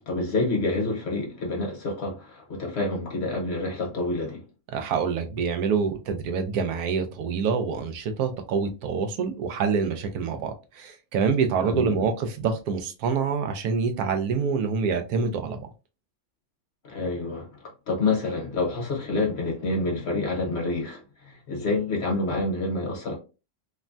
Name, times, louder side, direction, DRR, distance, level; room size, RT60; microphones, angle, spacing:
voice 1, 0.0-4.4 11.6-12.0 16.8-17.6 17.9-23.2, left 2 dB, 50° left, 1.0 m, -28 dB
voice 2, 4.7-15.7, right 5 dB, 80° right, 1.1 m, -26 dB
3.3 x 2.1 x 2.5 m
omnidirectional pair, 1.6 m